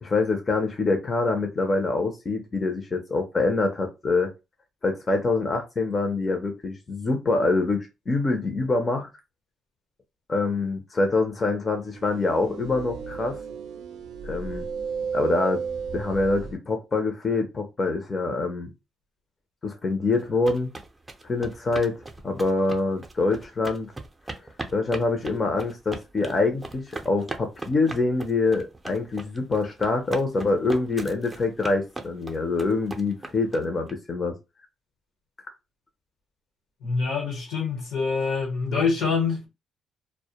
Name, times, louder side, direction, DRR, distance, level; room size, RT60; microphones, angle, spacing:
voice 1, 0.0-4.3 4.8-9.1 10.3-13.4 14.2-14.7 15.1-15.6 15.9-18.7 19.6-20.7 21.2-22.0 22.2-23.9 24.7-34.4, left 3 dB, 30° left, 0.5 m, -25 dB
sound 1, 11.9-16.6, right 6 dB, 80° right, 0.4 m, -33 dB
sound 2, 20.1-33.9, right 2 dB, 20° right, 0.5 m, -38 dB
voice 2, 36.8-39.5, left 5 dB, 85° left, 1.1 m, -25 dB
2.1 x 2.1 x 2.8 m
cardioid pair, 90°, 0 cm